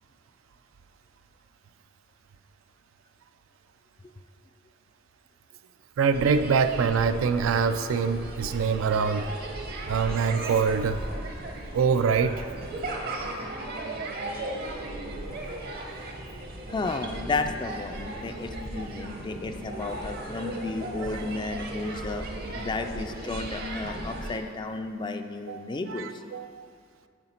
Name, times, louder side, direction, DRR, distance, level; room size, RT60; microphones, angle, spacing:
voice 1, 6.0-9.3 9.9-11.0 11.7-12.4 25.5-26.7, right 5 dB, 90° right, 10 dB, 0.4 m, -25 dB
sound 1, 6.1-24.4, right 1 dB, 50° right, 0.7 m, -36 dB
voice 2, 16.7-22.3 22.5-26.4, left 3 dB, 25° left, 7 dB, 0.3 m, -33 dB
7.8 x 4.9 x 4.3 m, 2.1 s
head